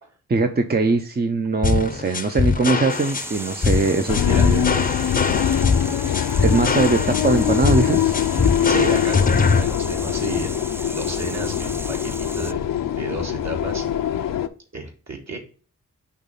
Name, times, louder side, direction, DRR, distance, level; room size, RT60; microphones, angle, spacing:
voice 1, 0.3-4.7 4.9-5.1 6.4-8.2, right 3 dB, 30° right, 6 dB, 0.7 m, -21 dB
sound 1, 1.6-9.6, left 4 dB, 25° left, 0.7 m, -22 dB
sound 2, 2.9-12.5, right 1 dB, 10° right, 0.3 m, -36 dB
sound 3, 4.1-14.5, left 10 dB, 80° left, 0.6 m, -23 dB
voice 2, 4.2-4.6 8.3-13.8 14.7-15.4, right 2 dB, 55° right, 0 dB, 2.3 m, -32 dB
6.0 x 3.2 x 5.4 m, 0.39 s
cardioid pair, 50°, 33 cm